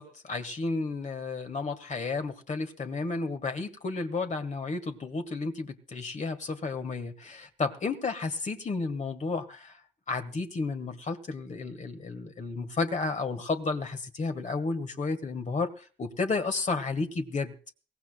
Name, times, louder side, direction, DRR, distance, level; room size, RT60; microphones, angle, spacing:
voice 1, 0.0-9.8 10.1-17.5, left 3 dB, 35° left, 7 dB, 1.5 m, -32 dB
22.5 x 17.5 x 2.2 m, 0.38 s
cardioid pair, 90°, 20 cm